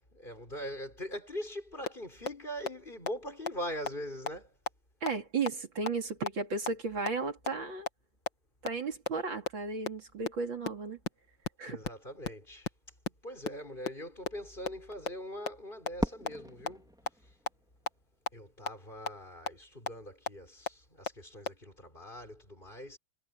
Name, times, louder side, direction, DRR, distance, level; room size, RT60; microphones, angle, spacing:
voice 1, 0.0-4.6 11.7-12.7 13.1-16.9 17.2-17.3 18.3-23.0, equal, 20° left, 6.1 m, -42 dB
sound 1, 1.9-2.0 2.3-2.4 2.7-2.8 3.1-3.2 3.5-3.6 3.9-4.0 4.3-4.4 4.7-4.8 5.1-5.2 5.5-5.6 5.9-6.0 6.3-6.4 6.7-6.8 7.1-7.2 7.5-7.6 7.9-8.0 8.3-8.4 8.7-8.8 9.1-9.2 9.5-9.6 9.9-10.0 10.3-10.4 10.7-10.8 11.0-11.1 11.4-11.5 11.8-11.9 12.2-12.3 12.6-12.7 13.0-13.1 13.5-13.6 13.9-14.0 14.3-14.4 14.7-14.8 15.1-15.2 15.5-15.6 15.9-16.0 16.3-16.4 16.7-16.8 17.1-17.2 17.5-17.6 17.9-18.0 18.3-18.4 18.7-18.8 19.1-19.2 19.5-19.6 19.9-20.0 20.3-20.4 20.7-20.8 21.1-21.2 21.5-21.6, left 5 dB, 60° left, 2.6 m, -31 dB
voice 2, 5.0-7.9 8.6-11.0 11.6-11.8, right 4 dB, 65° right, 3.5 m, -34 dB
Fireworks, 16.0-18.2, equal, ahead, 3.2 m, -38 dB
omnidirectional pair, 2.3 m